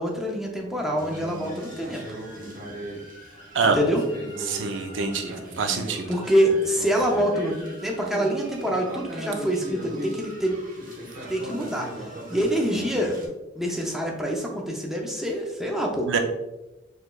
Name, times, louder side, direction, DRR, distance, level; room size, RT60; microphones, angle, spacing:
voice 1, 0.0-2.0 3.6-4.0 6.1-7.6 7.8-10.5 11.3-11.9 12.3-13.2 13.6-16.1, equal, ahead, -1 dB, 0.5 m, -25 dB
sound 1, 1.0-13.3, right 1 dB, 45° right, 1.1 m, -38 dB
voice 2, 4.5-6.1 16.1-16.2, right 5 dB, 70° right, 4 dB, 0.5 m, -25 dB
4.5 x 3.1 x 2.3 m, 1.0 s
head